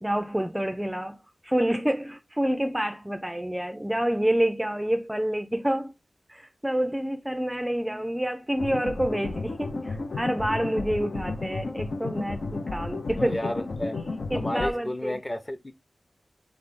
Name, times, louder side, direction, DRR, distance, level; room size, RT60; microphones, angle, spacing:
voice 1, 0.0-5.9 6.3-13.4 14.3-15.2, right 1 dB, 10° right, 0.4 m, -28 dB
sound 1, 8.6-14.7, left 3 dB, 90° left, 0.7 m, -33 dB
voice 2, 13.2-14.0 14.3-15.7, left 1 dB, 25° left, 0.7 m, -32 dB
3.7 x 3.3 x 4.0 m
wide cardioid pair, 85°, 0 cm